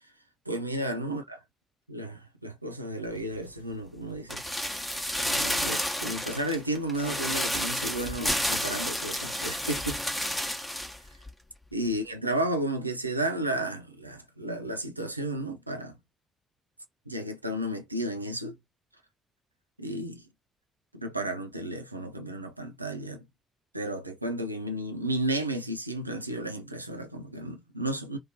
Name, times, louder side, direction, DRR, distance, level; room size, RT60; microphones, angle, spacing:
voice 1, 0.5-1.4 1.9-4.4 5.2-10.2 11.7-16.0 17.1-18.6 19.8-20.2 20.9-23.3 23.7-28.2, right 1 dB, 90° right, 0.4 m, -33 dB
sound 1, 4.3-11.0 11.3-11.4, equal, 5° left, 1.0 m, -31 dB
2.7 x 2.5 x 2.8 m
figure-of-eight pair, 45°, 0 cm